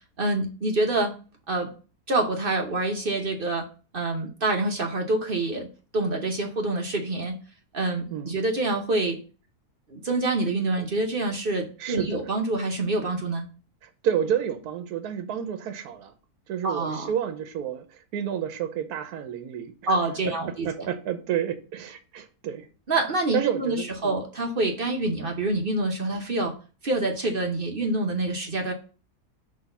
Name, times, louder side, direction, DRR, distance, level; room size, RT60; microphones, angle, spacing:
voice 1, 0.2-1.2 1.5-1.7 2.1-3.7 3.9-5.7 5.9-7.4 7.7-9.2 9.9-13.5 16.6-17.1 19.9-20.9 22.9-26.5 26.8-28.7, right 2 dB, 45° right, 0.8 m, -26 dB
voice 2, 11.8-12.2 13.8-16.1 16.5-20.0 20.6-22.7 23.3-24.1, right 9 dB, 75° right, 1.2 m, -30 dB
6.1 x 3.1 x 5.4 m
omnidirectional pair, 1.7 m